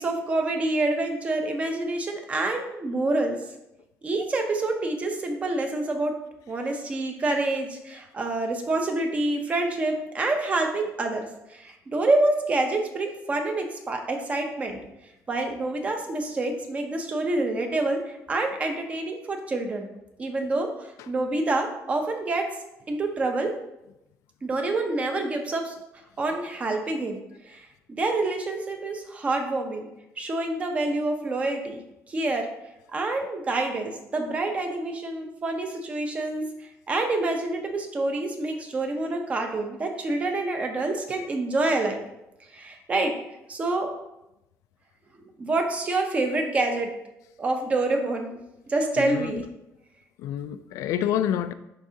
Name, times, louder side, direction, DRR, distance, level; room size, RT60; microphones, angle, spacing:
voice 1, 0.0-3.4 4.0-6.1 6.5-14.8 15.3-19.9 20.2-22.5 22.9-23.5 24.4-25.7 26.2-29.9 30.2-31.8 32.1-32.5 32.9-36.4 36.9-42.0 42.5-43.1 43.5-43.9 45.2-46.9 47.4-48.4 48.7-49.4, right 2 dB, 25° right, 4 dB, 0.7 m, -27 dB
voice 2, 49.0-49.3 50.2-51.5, left 10 dB, 75° left, 12 dB, 0.3 m, -27 dB
10.5 x 3.6 x 2.8 m, 0.88 s
cardioid pair, 175°, 5 cm